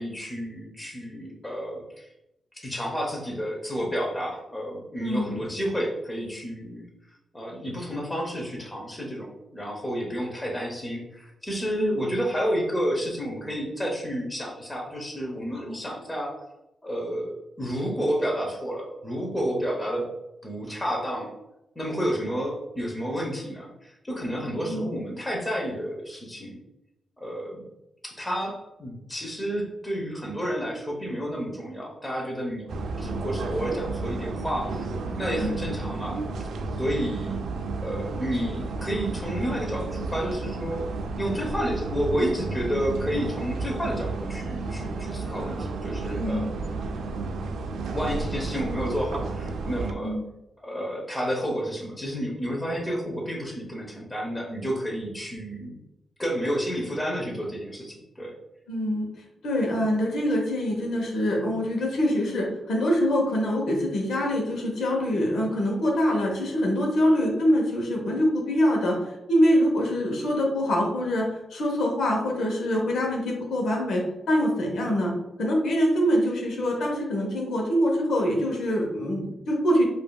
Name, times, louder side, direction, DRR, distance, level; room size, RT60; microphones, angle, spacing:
voice 1, 0.0-2.1 2.5-6.9 7.3-16.4 16.8-20.1 20.4-21.3 21.8-26.6 27.2-27.6 28.0-34.9 35.2-36.2 36.8-37.5 37.8-40.9 41.2-46.5 47.9-50.2 50.6-55.8 56.2-58.3, equal, 15° left, -2 dB, 0.8 m, -30 dB
voice 2, 5.0-5.5 11.8-12.0 15.5-15.6 24.7-25.0 35.4-35.6 46.1-46.5 50.0-50.2 58.7-59.1 59.4-75.1 75.4-79.9, equal, 80° left, 0 dB, 0.9 m, -24 dB
sound 1, 32.7-49.9, right 3 dB, 90° right, 0.4 m, -32 dB
4.8 x 2.6 x 2.3 m, 0.91 s
wide cardioid pair, 135°, 0 cm